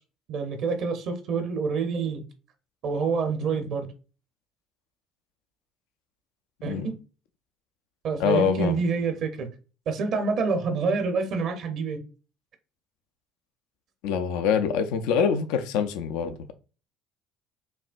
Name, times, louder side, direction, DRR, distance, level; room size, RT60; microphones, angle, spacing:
voice 1, 0.3-2.2 2.8-3.9 6.6-6.9 8.0-9.5 9.9-12.0, right 4 dB, 60° right, 0.7 m, -27 dB
voice 2, 8.2-8.8 14.0-16.5, left 7 dB, 75° left, 0.4 m, -25 dB
5.7 x 2.2 x 2.5 m
hypercardioid pair, 60°, 0 cm